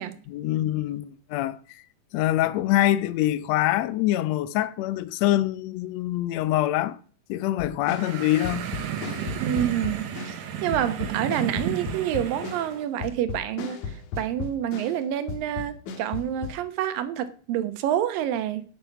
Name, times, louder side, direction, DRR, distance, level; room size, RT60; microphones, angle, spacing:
voice 1, 0.3-1.8 2.1-7.0 7.3-8.7, left 14 dB, 90° left, 1.5 m, -25 dB
sound 1, 7.6-10.5 10.7-15.0 15.3-16.5, left 6 dB, 65° left, 2.5 m, -36 dB
sound 2, 7.8-12.8, right 8 dB, 65° right, 2.3 m, -33 dB
voice 2, 9.4-18.6, right 11 dB, 85° right, 2.8 m, -28 dB
9.5 x 8.3 x 5.9 m
omnidirectional pair, 3.9 m